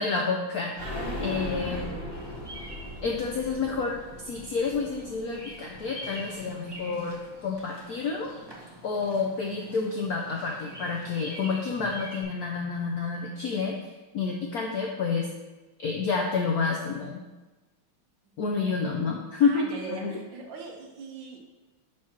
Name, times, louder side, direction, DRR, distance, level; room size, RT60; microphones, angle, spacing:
voice 1, 0.0-0.7 1.2-1.8 3.0-4.0 4.2-8.3 8.8-13.9 14.1-15.3 15.8-17.2 18.4-20.1, left 4 dB, 75° left, 0 dB, 0.8 m, -29 dB
sound 1, 0.7-6.4 6.7-6.8 7.1-7.2, left 1 dB, 40° left, 1.0 m, -39 dB
voice 2, 0.8-2.0 19.4-21.4, right 4 dB, 65° right, 1 dB, 1.5 m, -39 dB
Bird vocalization bird call bird song, 2.1-12.2, right 1 dB, 25° right, 0.5 m, -46 dB
4.8 x 4.4 x 5.8 m, 1.1 s
omnidirectional pair, 2.3 m